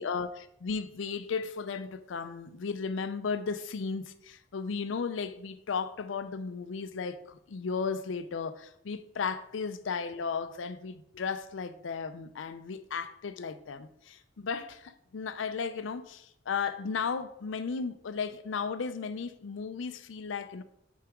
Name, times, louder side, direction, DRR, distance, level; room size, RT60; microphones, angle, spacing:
voice 1, 0.0-20.6, left 5 dB, 75° left, 0.5 m, -35 dB
5.9 x 4.7 x 3.6 m
head